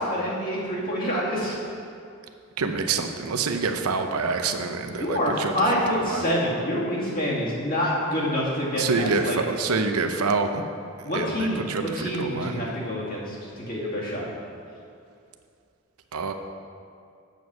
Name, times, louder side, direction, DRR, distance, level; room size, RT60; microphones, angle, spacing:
voice 1, 0.0-1.5 4.9-9.4 11.0-14.3, equal, 40° left, -6 dB, 2.4 m, -27 dB
voice 2, 2.6-5.5 5.9-6.3 8.8-10.6 11.1-12.6 16.1-16.3, right 4 dB, 85° right, 6 dB, 0.7 m, -26 dB
8.0 x 7.3 x 6.2 m, 2.5 s
head